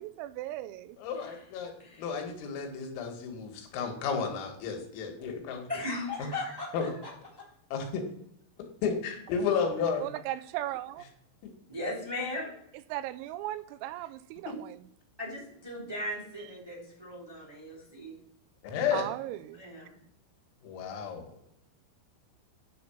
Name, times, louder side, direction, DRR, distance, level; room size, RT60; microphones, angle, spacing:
voice 1, 0.0-1.0 10.0-11.1 12.9-14.8 18.9-19.6, right 14 dB, 85° right, 3.3 m, -37 dB
voice 2, 1.0-1.7 2.0-5.6 6.2-6.3 6.7-6.9 7.7-8.0 8.8-10.1 14.5-14.6 18.6-19.1 20.6-21.3, left 6 dB, 80° left, 4.3 m, -32 dB
voice 3, 5.7-6.9 7.4-7.5 11.7-12.5 15.2-18.1 19.6-20.0, left 1 dB, 10° right, 1.2 m, -37 dB
10.5 x 4.3 x 7.0 m
omnidirectional pair, 5.9 m